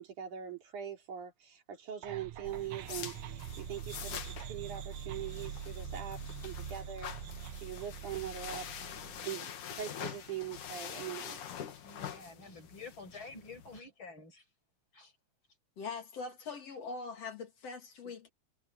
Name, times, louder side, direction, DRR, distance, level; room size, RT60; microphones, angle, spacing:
voice 1, 0.0-11.4, right 9 dB, 90° right, 5.0 m, -42 dB
sound 1, 2.0-9.2, right 10 dB, 65° right, 2.2 m, -44 dB
sound 2, 2.4-13.8, left 9 dB, 85° left, 3.3 m, -45 dB
voice 2, 11.7-14.4 14.9-15.1, left 3 dB, 40° left, 6.9 m, -49 dB
voice 3, 15.8-18.3, left 4 dB, 55° left, 3.6 m, -42 dB
omnidirectional pair, 3.4 m